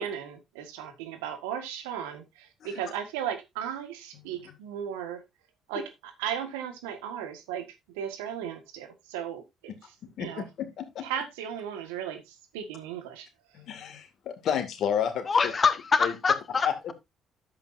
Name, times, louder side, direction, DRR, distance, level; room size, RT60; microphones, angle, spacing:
voice 1, 0.0-5.2 5.7-9.7 10.2-10.5 11.0-13.3, right 9 dB, 85° right, 1.6 m, -36 dB
voice 2, 4.1-4.5 10.2-10.3 10.6-11.0 13.5-15.5 16.0-16.1 16.6-16.7, left 8 dB, 65° left, 2.2 m, -31 dB
voice 3, 15.3-16.9, left 5 dB, 40° left, 1.5 m, -25 dB
10.5 x 8.2 x 2.7 m
hypercardioid pair, 55°, 0 cm